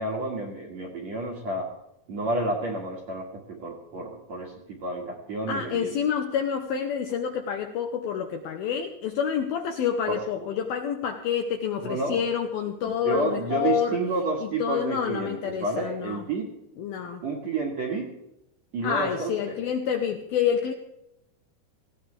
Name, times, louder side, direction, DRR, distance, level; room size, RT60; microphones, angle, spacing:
voice 1, 0.0-1.7 2.1-5.9 10.1-10.2 11.8-12.2 12.8-16.5 17.2-18.1 18.7-19.5, right 2 dB, 50° right, 0 dB, 2.3 m, -30 dB
voice 2, 5.5-14.0 14.4-16.3 16.8-17.2 18.8-20.7, left 8 dB, 80° left, 4 dB, 2.2 m, -28 dB
19.0 x 16.0 x 3.4 m, 0.84 s
omnidirectional pair, 5.4 m